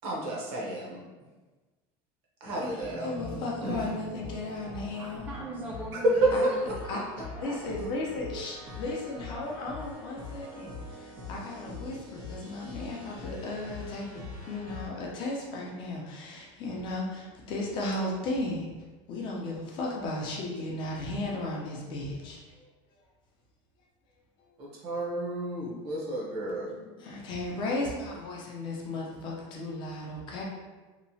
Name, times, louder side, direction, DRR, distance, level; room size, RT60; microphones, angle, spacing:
voice 1, 0.0-1.0 2.4-3.1 3.6-3.8 5.9-6.7 24.6-26.7, right 2 dB, 50° right, -3 dB, 0.7 m, -29 dB
voice 2, 2.5-5.3 6.3-6.4 6.9-7.0 7.4-14.2 14.5-18.7 19.1-22.4 27.0-30.4, left 2 dB, 40° left, -2 dB, 0.5 m, -35 dB
sound 1, 2.8-14.9, left 2 dB, 70° right, 1.0 m, -43 dB
voice 3, 5.0-6.6 6.9-7.0 7.3-7.6 26.5-27.0, right 1 dB, 15° right, -6 dB, 0.3 m, -41 dB
2.9 x 2.0 x 2.6 m, 1.3 s
cardioid pair, 165°, 12 cm